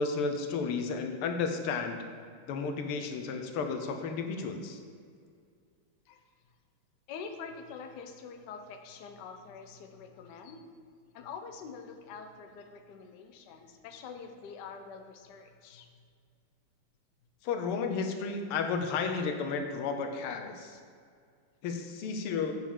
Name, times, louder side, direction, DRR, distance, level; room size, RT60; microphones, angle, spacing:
voice 1, 0.0-2.0 2.5-4.8 17.4-20.8 21.6-22.5, left 5 dB, 90° left, 5 dB, 1.7 m, -32 dB
voice 2, 7.1-10.7 11.1-16.0, left 5 dB, 65° left, 6 dB, 1.2 m, -45 dB
7.6 x 4.8 x 7.2 m, 2.2 s
omnidirectional pair, 2.4 m